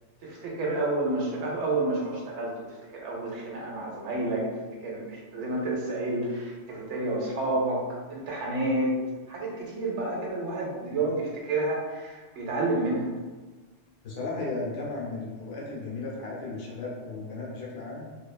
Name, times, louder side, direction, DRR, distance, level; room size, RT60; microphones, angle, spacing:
voice 1, 0.2-4.5 4.8-7.8 8.1-8.9 9.3-13.1, right 2 dB, 75° right, -2 dB, 1.0 m, -30 dB
voice 2, 14.0-18.0, left 3 dB, 80° left, -4 dB, 1.0 m, -35 dB
2.6 x 2.3 x 2.3 m, 1.3 s
omnidirectional pair, 1.3 m